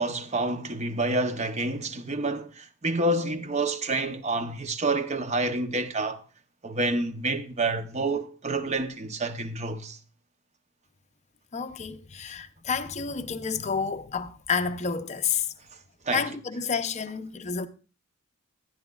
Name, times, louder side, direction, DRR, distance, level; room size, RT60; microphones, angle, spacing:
voice 1, 0.0-6.2 6.6-10.0 16.1-16.2, right 2 dB, 30° right, 0.7 m, -28 dB
voice 2, 11.5-15.5 16.1-17.7, left 6 dB, 30° left, 0.6 m, -30 dB
14.5 x 9.5 x 2.3 m
head